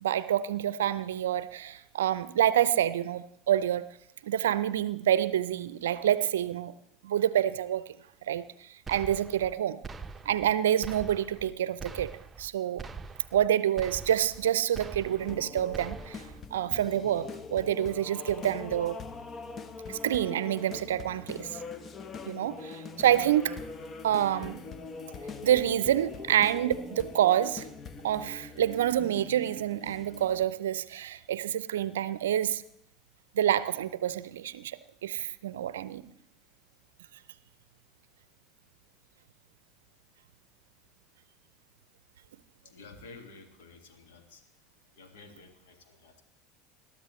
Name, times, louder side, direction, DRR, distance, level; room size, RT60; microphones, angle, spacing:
voice 1, 0.0-3.9 4.2-6.7 7.0-7.8 8.3-9.8 10.3-12.1 12.4-12.8 13.3-19.0 19.9-21.5 22.3-23.6 24.0-24.6 25.4-27.7 28.0-32.6 33.3-36.1, right 11 dB, 75° right, 0.5 m, -27 dB
sound 1, 8.9-9.5 9.8-10.5 10.8-11.5 11.8-12.5 12.8-13.5 13.8-14.5 14.8-15.4 15.7-16.4, right 4 dB, 20° right, 0.8 m, -43 dB
sound 2, 15.2-30.4, left 4 dB, 35° left, 1.0 m, -43 dB
voice 2, 42.6-44.4 45.0-46.2, left 3 dB, 75° left, 1.9 m, -51 dB
21.0 x 13.0 x 3.1 m
hypercardioid pair, 75°, 0 cm